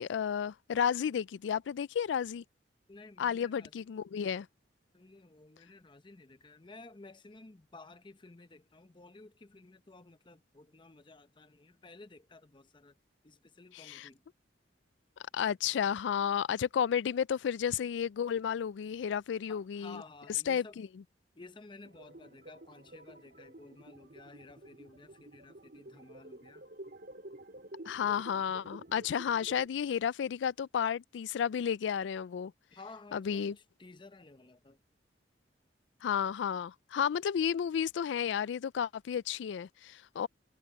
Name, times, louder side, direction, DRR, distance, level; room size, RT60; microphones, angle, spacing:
voice 1, 0.0-2.4 3.2-4.5 13.7-14.1 15.3-20.0 20.5-21.0 27.9-32.5 33.1-33.6 36.0-40.3, left 8 dB, 75° left, 0.3 m, -32 dB
voice 2, 2.9-3.9 4.9-13.0 13.2-14.2 19.5-20.8 21.3-26.6 32.7-34.8, left 3 dB, 25° left, 0.7 m, -54 dB
sound 1, 21.8-29.7, right 1 dB, 55° right, 3.9 m, -51 dB
head